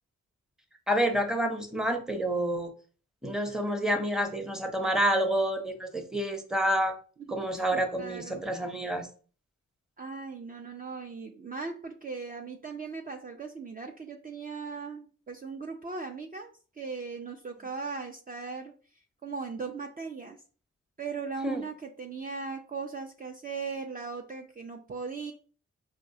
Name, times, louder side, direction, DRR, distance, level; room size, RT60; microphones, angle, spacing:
voice 1, 0.9-2.7 3.2-6.9 7.3-9.1 21.4-21.6, right 1 dB, ahead, 5 dB, 0.8 m, -28 dB
voice 2, 7.7-8.5 10.0-20.4 21.0-25.3, right 4 dB, 30° right, 3 dB, 0.5 m, -38 dB
4.3 x 2.4 x 2.7 m, 0.39 s
cardioid pair, 50°, 29 cm